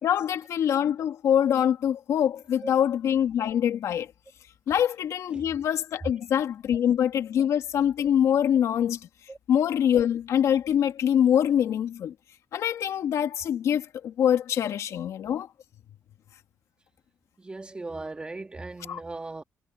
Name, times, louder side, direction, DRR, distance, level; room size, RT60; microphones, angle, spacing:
voice 1, 0.0-4.1 4.7-9.0 9.5-12.1 12.5-15.5 18.9-19.0, left 9 dB, 75° left, 2.1 m, -24 dB
voice 2, 17.4-19.4, right 3 dB, 20° right, 2.0 m, -38 dB
cardioid pair, 115°, 5 cm